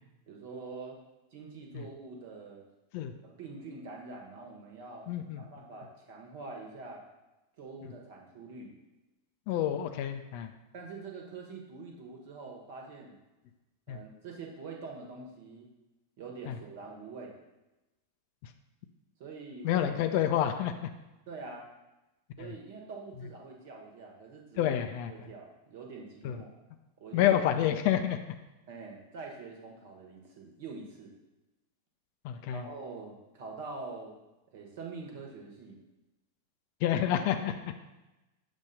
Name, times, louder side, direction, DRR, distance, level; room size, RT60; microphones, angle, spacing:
voice 1, 0.3-1.0 1.3-2.6 3.2-5.1 5.4-7.0 7.6-8.7 10.7-13.2 13.9-15.7 16.2-17.3 19.2-19.9 21.3-21.7 22.4-24.7 25.1-26.6 27.0-27.4 28.7-31.1 32.5-34.2 34.5-35.8, right 4 dB, 50° right, 1 dB, 1.3 m, -45 dB
voice 2, 5.1-5.4 7.8-7.9 9.5-10.5 13.9-14.0 16.5-16.6 19.6-20.9 22.4-22.5 24.6-25.1 26.2-26.4 27.1-28.2 32.2-32.7 36.8-37.6, left 10 dB, 45° left, 7 dB, 0.5 m, -28 dB
6.9 x 2.6 x 5.7 m, 1.0 s
figure-of-eight pair, 90°, 0 cm